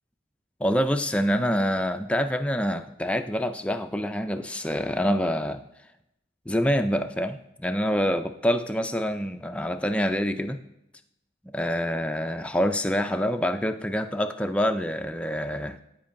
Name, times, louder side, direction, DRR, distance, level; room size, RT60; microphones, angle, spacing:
voice 1, 0.6-5.6 6.5-10.6 11.4-15.8, equal, 5° left, 7 dB, 0.4 m, -26 dB
14.0 x 5.2 x 2.5 m, 0.84 s
head